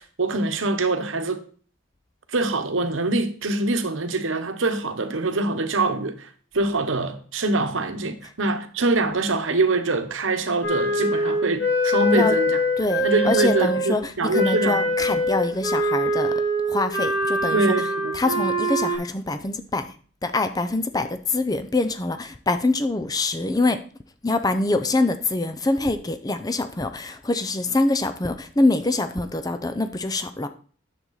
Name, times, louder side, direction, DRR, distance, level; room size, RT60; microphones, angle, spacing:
voice 1, 0.0-1.4 2.3-6.3 6.5-12.6 13.0-14.9 17.5-18.2, right 2 dB, 70° right, 1.0 m, -24 dB
Wind instrument woodwind instrument, 10.6-13.9 14.3-19.0, equal, 60° left, 3.9 m, -23 dB
voice 2, 12.8-16.3 16.7-17.7 18.1-19.9 20.2-23.8 24.2-30.5, left 2 dB, 20° left, 0.6 m, -24 dB
9.9 x 7.3 x 4.0 m
head